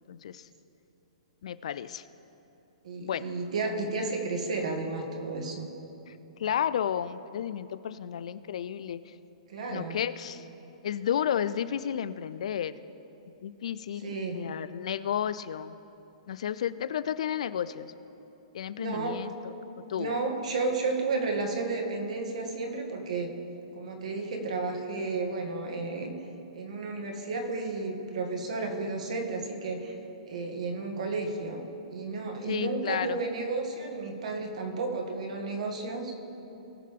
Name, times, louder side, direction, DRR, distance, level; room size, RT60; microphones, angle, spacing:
voice 1, 0.1-0.5 1.4-2.0 3.0-3.3 6.1-6.2 6.4-9.1 9.7-10.4 10.8-12.8 13.4-15.7 16.3-17.9 18.5-19.5 19.9-20.2 32.5-33.2, left 9 dB, 70° left, 15 dB, 0.4 m, -32 dB
voice 2, 2.8-5.7 9.5-10.0 14.0-14.4 18.8-19.2 20.0-23.3 23.7-26.1 26.5-30.0 30.3-31.6 31.9-36.1, right 3 dB, 75° right, 2 dB, 1.9 m, -32 dB
19.5 x 6.6 x 3.7 m, 3.0 s
hypercardioid pair, 160°, 4 cm